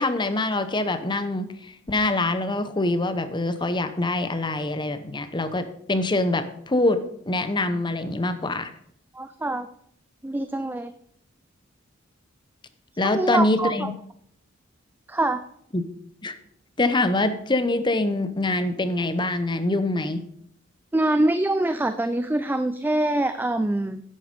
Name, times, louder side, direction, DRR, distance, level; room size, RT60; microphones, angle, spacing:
voice 1, 0.0-7.0 7.3-8.7 13.0-13.9 15.7-15.8 16.2-16.4 16.8-20.2, left 2 dB, 25° left, 10 dB, 0.8 m, -24 dB
voice 2, 9.1-9.7 10.2-10.9 13.0-13.9 15.1-15.4 20.9-24.0, right 1 dB, 10° right, 11 dB, 0.4 m, -24 dB
11.0 x 8.4 x 5.3 m, 0.68 s
head